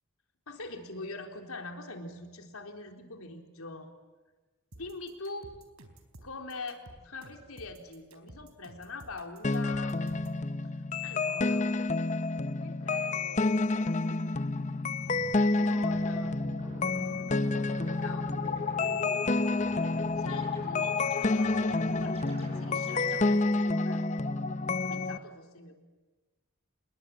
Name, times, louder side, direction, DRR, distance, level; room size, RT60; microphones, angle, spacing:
voice 1, 0.5-3.9 4.7-5.5 6.2-10.0 10.6-11.7 12.5-14.4 15.1-18.7 20.2-24.0 24.7-25.7, left 3 dB, 85° left, 4 dB, 4.0 m, -44 dB
sound 1, 4.7-10.4, right 1 dB, 85° right, 4.0 m, -52 dB
sound 2, 9.4-25.2, left 3 dB, 35° left, 0.8 m, -29 dB
sound 3, 15.0-23.2, equal, 30° right, 7.1 m, -47 dB
28.5 x 21.0 x 8.9 m, 1.2 s
head